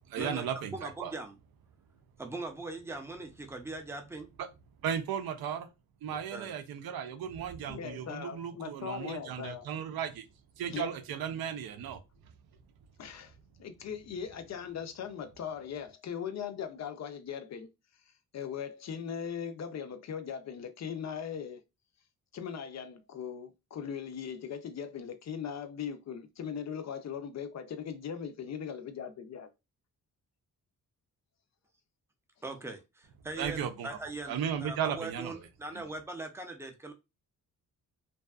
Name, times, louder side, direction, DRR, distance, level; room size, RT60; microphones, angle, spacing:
voice 1, 0.1-1.1 4.8-5.7 6.0-10.3 10.6-12.0 33.4-34.0 34.3-35.8, right 8 dB, 85° right, 0.5 m, -35 dB
voice 2, 0.7-1.3 2.2-4.3 6.3-6.5 32.4-36.9, right 2 dB, 10° right, 0.4 m, -41 dB
voice 3, 7.7-9.7 10.7-10.9 13.0-13.3 13.6-17.7 18.3-21.6 22.3-29.5, left 7 dB, 50° left, 0.4 m, -39 dB
2.6 x 2.3 x 2.3 m
wide cardioid pair, 115°, 35 cm